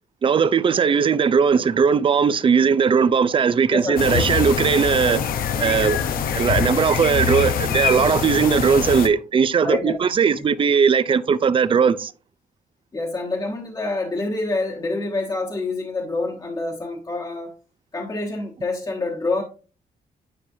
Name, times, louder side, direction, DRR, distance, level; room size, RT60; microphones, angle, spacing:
voice 1, 0.2-5.2 5.5-6.0 6.3-12.1, right 6 dB, 35° right, 0.5 m, -18 dB
voice 2, 3.7-4.2 9.6-9.9 10.4-10.5 12.9-17.5 17.9-19.4, left 2 dB, 25° left, 1.2 m, -27 dB
sound 1, 4.0-9.1, left 7 dB, 80° left, 0.7 m, -24 dB
9.8 x 4.8 x 2.7 m
cardioid pair, 105°, 15 cm